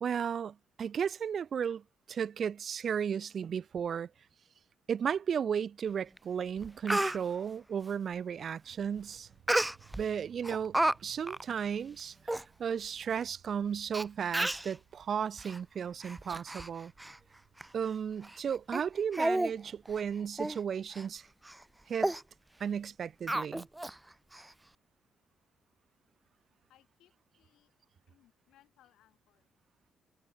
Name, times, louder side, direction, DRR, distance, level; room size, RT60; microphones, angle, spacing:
voice 1, 0.0-4.1 4.9-9.3 10.0-16.9 17.7-21.2 21.9-22.1 22.6-23.7, right 7 dB, 50° right, 0.6 m, -34 dB
Speech, 6.2-6.3 6.6-7.2 9.5-10.0 10.4-11.0 11.3-11.4 12.0-12.1 12.3-12.4 13.2-13.3 13.9-14.0 14.3-14.7 15.4-15.6 16.0-16.7 17.0-17.2 17.6-17.7 18.2-18.4 18.7-18.8 19.1-19.5 19.9-20.0 20.4-20.6 20.9-21.1 21.5-21.6 22.0-22.2 23.3-23.9 24.3-24.4, right 1 dB, 10° right, 0.4 m, -31 dB
sound 1, 8.7-21.8, right 11 dB, 65° right, 6.7 m, -64 dB
voice 2, 26.7-27.7 28.1-29.5, left 13 dB, 85° left, 7.8 m, -67 dB
cardioid pair, 125°, 0 cm